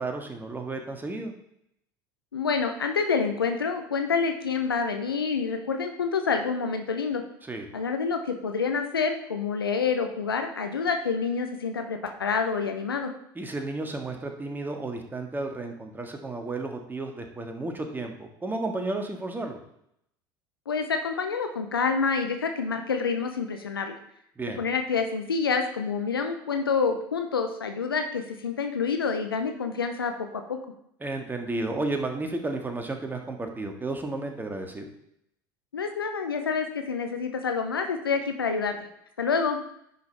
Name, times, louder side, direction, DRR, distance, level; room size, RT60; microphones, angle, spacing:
voice 1, 0.0-1.3 7.4-7.7 13.4-19.6 24.4-24.6 31.0-34.9, right 2 dB, 15° right, 4 dB, 1.7 m, -32 dB
voice 2, 2.3-7.2 7.7-13.1 20.7-24.0 24.6-30.6 35.7-38.8 39.2-39.6, left 5 dB, 90° left, 6 dB, 0.7 m, -27 dB
10.0 x 5.3 x 4.1 m, 0.74 s
hypercardioid pair, 70°, 12 cm